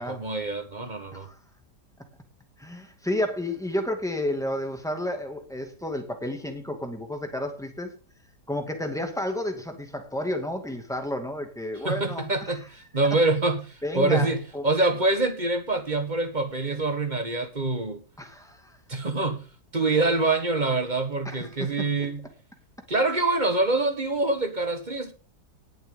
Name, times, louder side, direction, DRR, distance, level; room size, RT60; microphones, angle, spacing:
voice 1, 0.0-1.3 11.8-18.0 18.9-19.5 19.7-22.2 22.9-25.1, right 2 dB, 30° right, 1.4 m, -25 dB
voice 2, 2.6-7.9 8.5-12.5 13.8-14.3 14.5-14.6 18.2-18.8 21.2-21.7, left 1 dB, ahead, 2.3 m, -31 dB
19.0 x 7.5 x 3.9 m
omnidirectional pair, 1.8 m